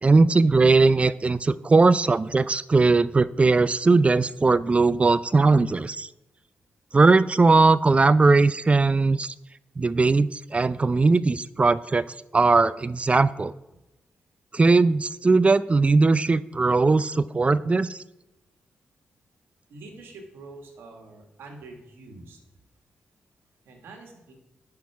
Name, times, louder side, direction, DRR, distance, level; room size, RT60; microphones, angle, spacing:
voice 1, 0.0-6.1 6.9-9.3 9.8-12.1 12.3-13.5 14.5-18.0, right 3 dB, 35° right, 17 dB, 0.4 m, -19 dB
voice 2, 19.7-22.4 23.6-24.3, right 3 dB, 80° right, 3 dB, 1.9 m, -45 dB
9.4 x 6.1 x 4.8 m, 0.97 s
supercardioid pair, 50°, 4 cm